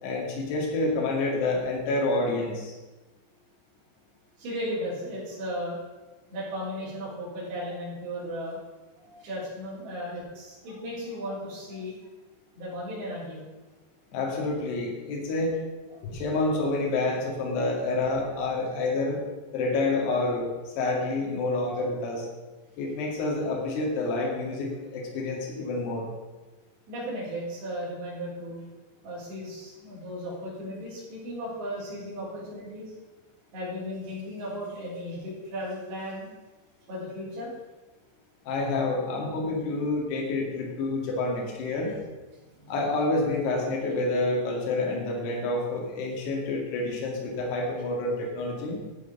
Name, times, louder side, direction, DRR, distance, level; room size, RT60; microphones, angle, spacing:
voice 1, 0.0-2.7 14.1-15.5 16.0-19.2 19.5-22.3 22.8-26.1 38.4-41.9 42.7-48.8, left 2 dB, 60° left, -2 dB, 4.1 m, -28 dB
voice 2, 4.4-5.8 6.3-8.6 9.0-12.0 12.6-13.5 15.9-16.0 26.9-28.6 29.0-32.9 33.5-36.3 36.9-37.5 42.6-42.7, equal, 55° right, -7 dB, 6.0 m, -35 dB
13.5 x 7.1 x 5.6 m, 1.2 s
omnidirectional pair, 5.9 m